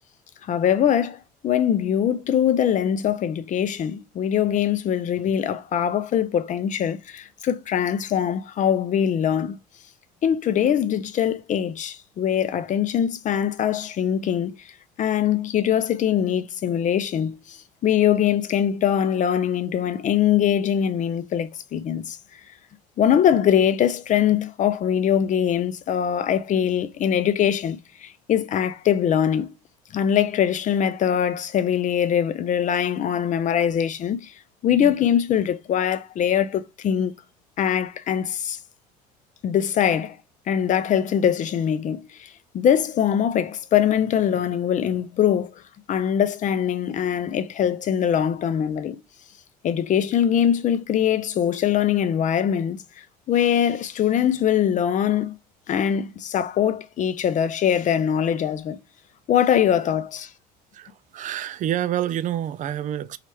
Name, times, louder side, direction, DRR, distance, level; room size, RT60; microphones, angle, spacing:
voice 1, 0.5-9.6 10.2-14.7 15.0-22.2 23.0-29.5 29.9-34.3 34.6-37.1 37.6-38.6 39.4-40.2 40.5-45.5 45.9-49.0 49.6-55.4 55.7-58.8 59.3-60.3, left 9 dB, 40° left, 0.5 m, -22 dB
voice 2, 60.7-63.2, right 11 dB, 40° right, 0.4 m, -28 dB
3.0 x 2.4 x 4.3 m
hypercardioid pair, 75°, 20 cm